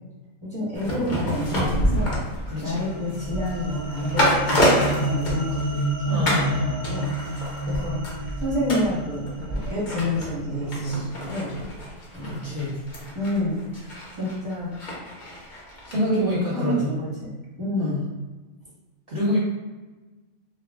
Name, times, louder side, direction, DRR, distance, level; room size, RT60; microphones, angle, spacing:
voice 1, 0.4-2.2 2.6-11.5 12.1-12.6 13.1-14.7 16.1-18.0, equal, 5° left, -9 dB, 1.0 m, -29 dB
sound 1, 0.7-5.9 6.3-6.5 6.8-16.0 16.3-16.4, equal, 45° left, 0.8 m, -28 dB
voice 2, 2.5-2.9 6.1-6.6 12.2-12.7 14.2-14.3 15.9-16.9 17.8-18.0 19.1-19.4, left 1 dB, 55° right, -8 dB, 0.7 m, -27 dB
sound 2, 2.6-11.1, equal, 80° right, 1.0 m, -30 dB
2.4 x 2.1 x 3.4 m, 1.2 s
omnidirectional pair, 1.4 m